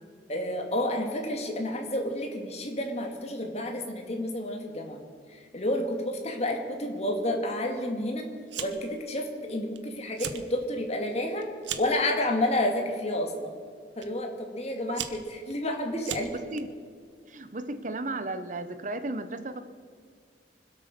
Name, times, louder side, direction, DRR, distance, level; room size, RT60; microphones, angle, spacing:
voice 1, 0.3-5.0 5.5-8.3 8.6-11.4 11.8-13.5 14.0-16.3, left 1 dB, 35° left, 3 dB, 2.4 m, -30 dB
Fire, 8.5-9.0 9.3-9.8 10.1-10.5 10.9-12.0 12.8-13.1 14.0-14.1 14.7-16.6, right 9 dB, 75° right, 1.1 m, -37 dB
voice 2, 17.3-19.6, right 2 dB, 45° right, 11 dB, 0.9 m, -34 dB
25.0 x 8.5 x 6.7 m, 2.1 s
head